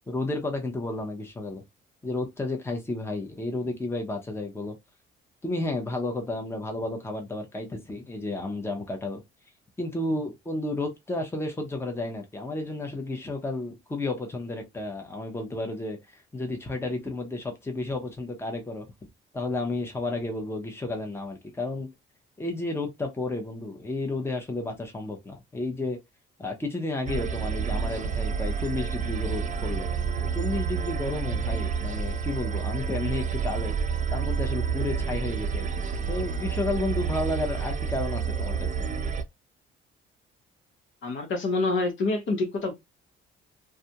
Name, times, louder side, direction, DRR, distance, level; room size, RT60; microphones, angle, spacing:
voice 1, 0.1-1.6 2.0-4.8 5.4-9.2 9.8-18.9 19.3-21.9 22.4-26.0 26.4-29.9 30.2-33.8 34.1-35.7 36.1-38.9, left 2 dB, 10° left, 0.8 m, -32 dB
sound 1, 27.1-39.2, right 6 dB, 35° right, 0.5 m, -29 dB
voice 2, 41.0-42.7, left 3 dB, 65° left, 1.0 m, -27 dB
2.4 x 2.2 x 2.8 m
cardioid pair, 95°, 21 cm